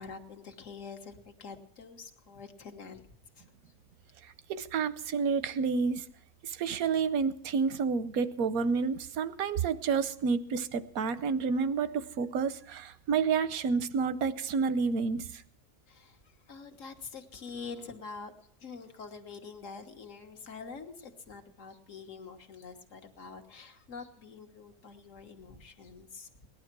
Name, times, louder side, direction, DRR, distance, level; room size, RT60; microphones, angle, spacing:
voice 1, 0.0-3.0 3.4-3.5 15.9-16.2 16.5-18.3 18.6-26.3, left 5 dB, 65° left, 6 dB, 1.7 m, -46 dB
voice 2, 4.5-6.1 6.4-15.4, right 5 dB, 90° right, 13 dB, 1.2 m, -29 dB
18.5 x 11.0 x 6.0 m, 0.69 s
omnidirectional pair, 1.5 m